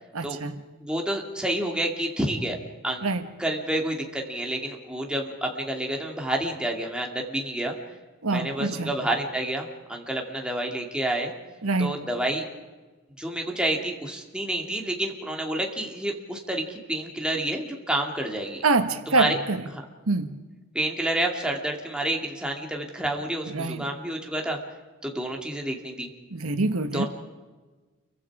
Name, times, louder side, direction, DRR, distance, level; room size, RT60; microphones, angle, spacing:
voice 1, 0.1-0.5 3.0-3.3 8.2-8.9 11.6-12.0 18.6-19.7 20.1-20.3 23.5-23.9 26.3-27.1, right 3 dB, 90° right, 9 dB, 1.4 m, -25 dB
voice 2, 0.8-2.6 2.8-3.1 3.4-7.8 8.3-11.3 11.8-12.4 13.2-18.6 19.2-19.4 19.7-19.8 20.7-24.6 25.0-26.1 26.9-27.1, right 1 dB, 5° right, 0 dB, 2.6 m, -29 dB
29.0 x 23.5 x 4.9 m, 1.3 s
head